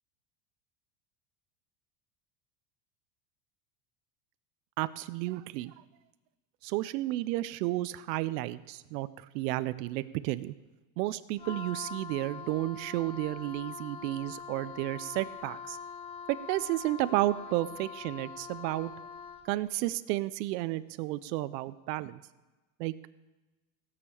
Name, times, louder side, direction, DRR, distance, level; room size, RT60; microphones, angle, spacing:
voice 1, 4.8-5.7 6.6-10.5 11.0-15.8 16.3-18.9 19.4-22.2 22.8-22.9, right 17 dB, 85° right, 14 dB, 0.7 m, -32 dB
Wind instrument woodwind instrument, 11.4-19.5, left 6 dB, 15° left, 0.3 m, -44 dB
16.5 x 6.8 x 6.9 m, 1.1 s
supercardioid pair, 135°, 49 cm